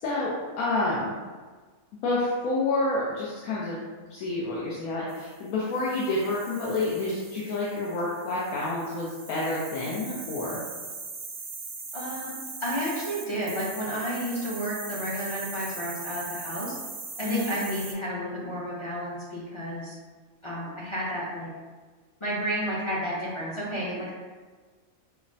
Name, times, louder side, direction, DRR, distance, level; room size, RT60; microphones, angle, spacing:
voice 1, 0.0-1.1 2.0-3.8 4.1-10.6 17.2-17.5, left 2 dB, 85° left, -6 dB, 1.1 m, -29 dB
sound 1, 5.1-17.9, right 4 dB, 60° right, 0.7 m, -40 dB
voice 2, 11.9-16.8 17.2-20.0 20.4-21.5 22.2-24.1, equal, 35° left, -8 dB, 0.5 m, -31 dB
5.4 x 2.0 x 2.6 m, 1.4 s
omnidirectional pair, 1.5 m